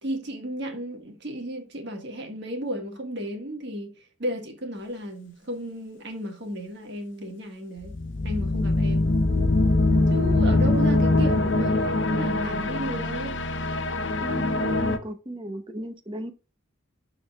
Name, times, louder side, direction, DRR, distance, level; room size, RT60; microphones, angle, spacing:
voice 1, 0.0-8.0 8.2-9.1 10.1-13.4, equal, 55° right, 1.5 m, -34 dB
sound 1, 7.8-15.0, left 2 dB, 60° left, 0.7 m, -23 dB
voice 2, 14.2-16.3, right 1 dB, 25° right, 0.8 m, -35 dB
11.5 x 4.0 x 2.2 m
head